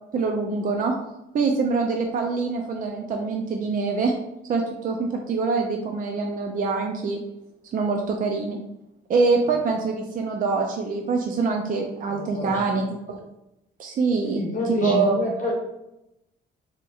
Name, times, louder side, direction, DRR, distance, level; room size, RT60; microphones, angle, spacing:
voice 1, 0.1-0.9 1.3-4.1 4.5-7.2 7.7-8.6 9.1-13.2 13.8-15.2, right 4 dB, 45° right, 2 dB, 0.4 m, -24 dB
voice 2, 12.1-12.7 14.2-15.5, left 2 dB, 40° left, -2 dB, 1.0 m, -28 dB
3.8 x 2.9 x 2.4 m, 0.88 s
cardioid pair, 90°, 20 cm